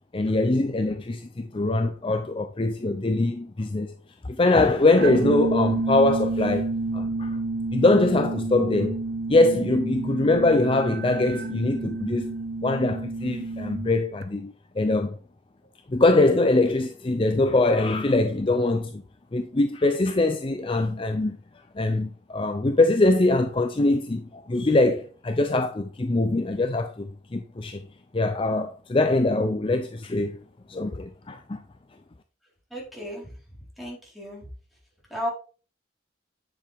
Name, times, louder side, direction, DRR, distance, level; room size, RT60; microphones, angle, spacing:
voice 1, 0.1-3.9 4.2-7.4 7.7-9.0 9.3-12.3 12.6-15.2 15.9-19.0 19.3-21.4 21.7-27.8 28.1-30.4 30.7-31.6, left 2 dB, 30° left, 0.5 m, -23 dB
sound 1, 5.0-14.2, right 2 dB, 55° right, 1.0 m, -29 dB
voice 2, 32.7-33.4 33.8-34.5 35.1-35.3, equal, ahead, 4.2 m, -34 dB
10.0 x 6.7 x 3.5 m
head